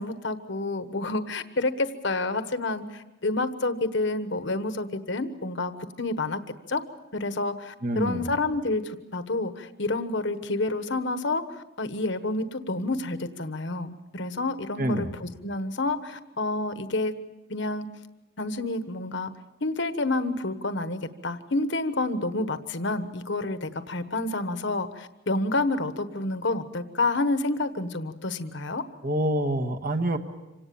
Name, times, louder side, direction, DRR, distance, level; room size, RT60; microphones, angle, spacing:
voice 1, 0.0-6.4 6.7-6.8 7.1-17.1 17.5-17.9 18.4-19.3 19.6-28.8, left 2 dB, 60° left, 10 dB, 1.3 m, -29 dB
voice 2, 7.8-8.3 14.8-15.1 29.0-30.2, right 1 dB, 45° right, 7 dB, 1.4 m, -26 dB
26.5 x 18.0 x 7.0 m, 1.0 s
head